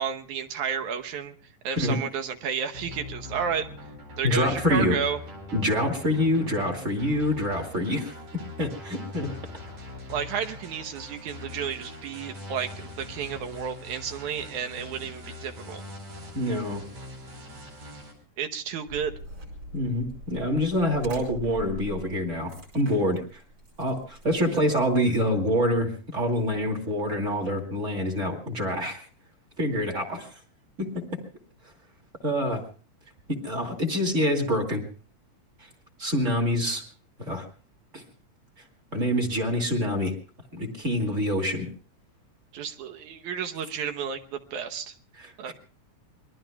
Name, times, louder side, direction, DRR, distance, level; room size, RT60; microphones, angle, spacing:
voice 1, 0.0-1.4 1.6-3.7 4.2-5.2 10.1-15.8 18.4-19.1 42.5-44.9 45.4-45.5, right 7 dB, 75° right, 6 dB, 2.4 m, -32 dB
sound 1, 2.7-18.1, left 2 dB, 60° right, 5.9 m, -42 dB
voice 2, 4.2-5.0 5.5-8.1 8.6-9.4 16.3-16.8 19.7-23.4 23.8-29.1 29.6-30.3 30.8-31.0 32.2-32.6 33.3-34.8 36.0-36.8 37.2-37.5 37.9-38.0 38.9-40.1 40.5-41.7 45.2-45.5, left 1 dB, 25° right, 2 dB, 2.4 m, -26 dB
sound 2, 18.9-25.2, right 1 dB, 40° right, 5.7 m, -43 dB
27.0 x 21.5 x 2.3 m, 0.38 s
omnidirectional pair, 3.6 m